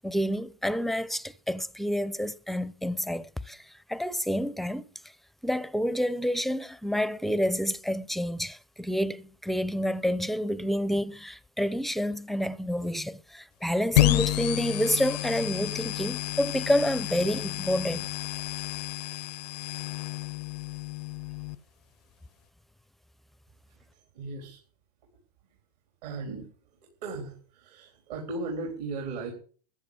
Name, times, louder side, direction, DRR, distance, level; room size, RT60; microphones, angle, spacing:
voice 1, 0.0-3.6 3.9-4.9 5.4-18.1, equal, ahead, 0.5 m, -29 dB
sound 1, 13.9-21.5, left 17 dB, 75° left, 0.7 m, -30 dB
voice 2, 23.7-24.6 26.0-26.5 27.0-29.3, right 3 dB, 75° right, 3.9 m, -37 dB
14.5 x 8.2 x 7.1 m
hypercardioid pair, 120°, 21 cm